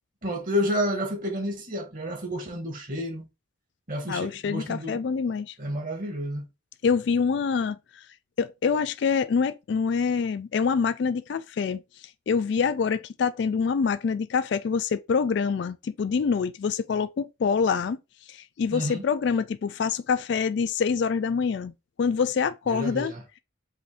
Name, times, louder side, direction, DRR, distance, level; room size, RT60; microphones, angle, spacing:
voice 1, 0.2-3.3 3.9-5.0 5.6-6.5 18.7-19.0 22.7-23.2, equal, 40° right, 1.4 m, -30 dB
voice 2, 4.1-5.5 6.8-8.1 8.4-18.0 18.3-21.7 22.0-23.1, left 5 dB, 55° left, 0.3 m, -26 dB
5.5 x 2.6 x 3.4 m
head